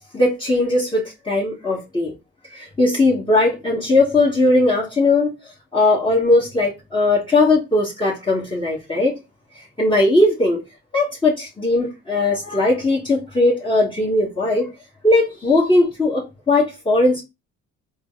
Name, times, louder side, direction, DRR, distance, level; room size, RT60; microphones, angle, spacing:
voice 1, 0.0-2.1 2.5-5.3 5.7-9.2 9.8-10.6 10.9-14.7 15.0-17.2, left 2 dB, 15° left, 1.3 m, -18 dB
4.0 x 2.1 x 3.9 m
cardioid pair, 90°, 30 cm